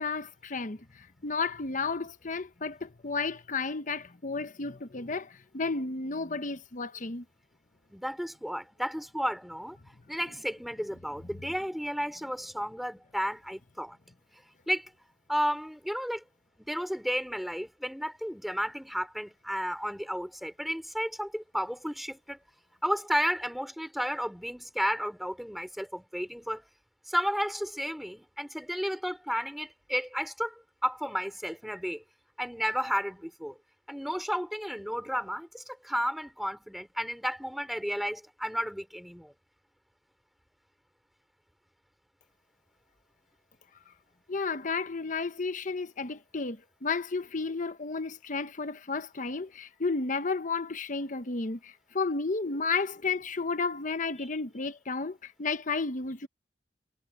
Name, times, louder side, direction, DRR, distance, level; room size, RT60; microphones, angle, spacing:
voice 1, 0.0-7.2 44.3-56.3, left 4 dB, 45° left, 1.0 m, -32 dB
voice 2, 7.9-9.8 10.1-14.0 14.7-14.9 15.3-16.2 16.6-22.4 22.8-26.7 27.1-32.0 32.4-33.6 33.9-39.3, equal, ahead, 4.3 m, -33 dB
head